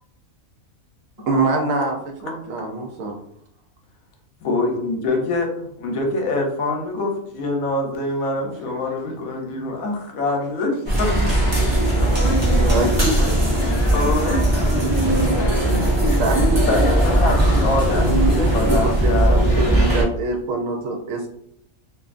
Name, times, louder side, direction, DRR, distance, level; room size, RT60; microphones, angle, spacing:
voice 1, 1.3-2.0 2.2-3.2 8.7-9.0 9.6-9.7 12.7-13.2 16.2-16.7 18.1-21.3, right 3 dB, 70° right, 2 dB, 0.9 m, -24 dB
voice 2, 4.4-5.5 5.8-10.7 11.0-11.5 12.0-12.1 13.9-14.4 16.7-19.5, left 2 dB, 80° left, 2 dB, 1.0 m, -24 dB
voice 3, 10.3-10.7 12.0-18.2, left 1 dB, 60° left, -4 dB, 0.6 m, -34 dB
sound 1, 10.9-20.0, right 1 dB, 40° right, 0.4 m, -18 dB
2.6 x 2.4 x 2.4 m, 0.71 s
omnidirectional pair, 1.5 m